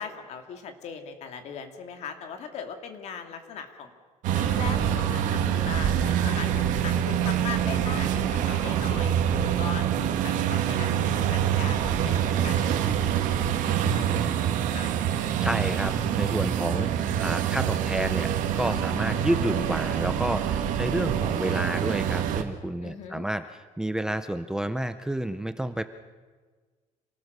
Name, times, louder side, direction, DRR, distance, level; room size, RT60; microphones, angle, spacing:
voice 1, 0.0-3.9 4.3-9.2 9.6-14.9 22.8-23.3, left 6 dB, 55° left, 6 dB, 2.5 m, -39 dB
sound 1, 4.2-22.4, right 9 dB, 75° right, 2.0 m, -26 dB
voice 2, 15.4-16.9 17.2-25.8, right 1 dB, 5° right, 10 dB, 0.6 m, -30 dB
27.0 x 18.5 x 6.8 m, 1.4 s
cardioid pair, 175°, 13 cm